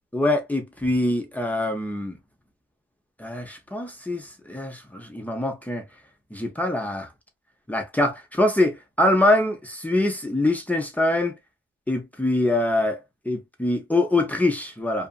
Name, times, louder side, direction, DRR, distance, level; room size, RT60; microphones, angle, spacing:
voice 1, 0.1-2.2 3.2-5.8 6.3-7.1 7.7-11.3 11.9-13.0 13.3-15.1, left 1 dB, 5° left, 0.6 m, -24 dB
2.6 x 2.4 x 2.2 m
wide cardioid pair, 120°, 21 cm